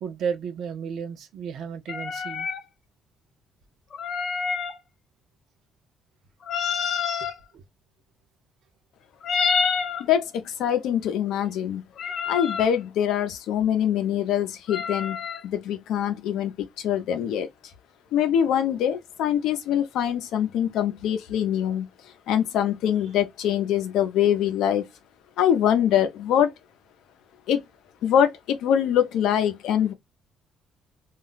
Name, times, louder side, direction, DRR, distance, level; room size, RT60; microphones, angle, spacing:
voice 1, 0.0-2.5 7.2-7.6, right 7 dB, 60° right, 0.6 m, -33 dB
sound 1, 1.9-2.6 3.9-4.8 6.4-7.4 9.2-10.0 12.0-12.7 14.7-15.4, left 6 dB, 45° left, 0.4 m, -27 dB
voice 2, 10.0-11.8 12.3-15.2 15.4-16.5 16.8-17.5 18.1-21.9 22.3-24.8 25.4-26.5 27.5-27.6 28.0-29.9, left 9 dB, 85° left, 0.6 m, -23 dB
2.4 x 2.0 x 3.8 m
cardioid pair, 175°, 0 cm